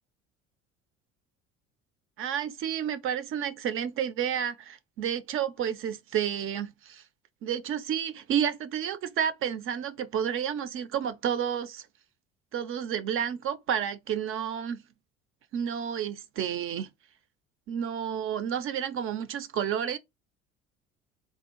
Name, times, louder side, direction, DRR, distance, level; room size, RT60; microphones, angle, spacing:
voice 1, 2.2-7.0 7.4-11.9 12.5-14.8 15.5-16.9 17.7-20.0, right 9 dB, 40° right, 0.6 m, -30 dB
3.6 x 2.3 x 4.3 m
figure-of-eight pair, 60°, 34 cm